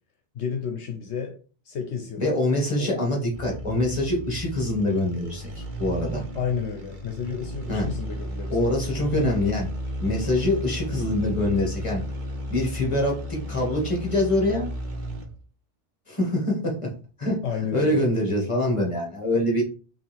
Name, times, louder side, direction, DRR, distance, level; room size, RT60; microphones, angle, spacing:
voice 1, 0.3-1.4 1.6-2.2 2.8-3.1 6.3-8.7 9.1-9.3 17.4-18.0, left 6 dB, 75° left, 1.0 m, -31 dB
voice 2, 2.2-6.2 7.7-7.9 8.5-9.7 10.0-12.0 12.5-14.7 16.1-16.9 17.2-17.4 17.7-19.6, left 1 dB, 25° left, 1.8 m, -24 dB
sound 1, 3.3-15.4, equal, 45° right, 1.0 m, -34 dB
5.2 x 3.0 x 3.4 m
omnidirectional pair, 1.2 m